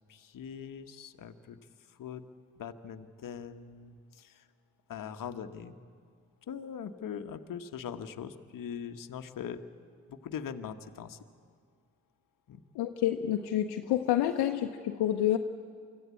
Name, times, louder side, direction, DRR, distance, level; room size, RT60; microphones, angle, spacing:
voice 1, 0.1-2.2 2.6-4.5 4.9-5.8 6.5-9.6 10.1-11.2 12.5-12.6, left 7 dB, 55° left, 8 dB, 1.3 m, -41 dB
voice 2, 12.7-15.4, left 12 dB, 70° left, 5 dB, 1.0 m, -28 dB
24.5 x 14.5 x 8.3 m, 2.2 s
hypercardioid pair, 50°, 40 cm